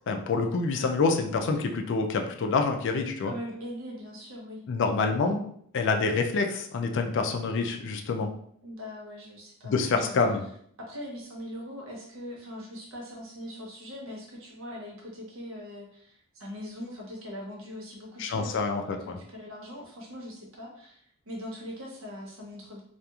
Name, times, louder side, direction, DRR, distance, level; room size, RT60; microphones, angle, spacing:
voice 1, 0.1-3.3 4.7-5.4 5.7-8.3 9.6-10.4 18.2-19.2, left 4 dB, 55° left, 4 dB, 0.3 m, -27 dB
voice 2, 3.2-4.7 8.6-10.1 10.8-22.8, equal, 65° right, -2 dB, 0.8 m, -41 dB
2.9 x 2.4 x 2.3 m, 0.64 s
head